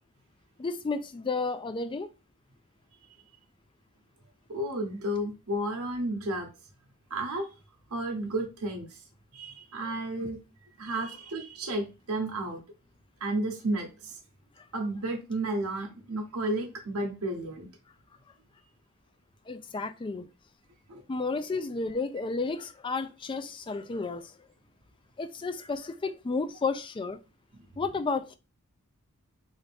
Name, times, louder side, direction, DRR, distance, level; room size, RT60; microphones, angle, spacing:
voice 1, 0.6-2.1 14.6-14.7 19.5-20.3 21.1-24.4 25.2-27.2 27.8-28.4, left 4 dB, 20° left, 0.3 m, -32 dB
voice 2, 4.5-6.5 7.1-7.5 7.9-9.0 9.3-10.4 10.8-12.6 13.2-14.2 14.7-17.7 20.9-21.0, right 1 dB, 80° right, 0.9 m, -32 dB
4.0 x 2.6 x 3.3 m
head